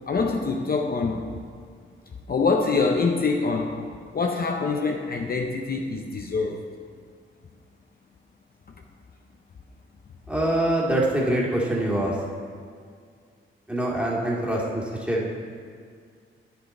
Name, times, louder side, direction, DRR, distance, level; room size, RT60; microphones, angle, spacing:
voice 1, 0.1-1.3 2.3-3.8 4.1-6.6, left 4 dB, 45° left, 2 dB, 0.7 m, -25 dB
voice 2, 10.3-12.2 13.7-15.4, right 1 dB, 5° right, -5 dB, 2.1 m, -24 dB
9.4 x 6.8 x 4.3 m, 2.1 s
cardioid pair, 75°, 21 cm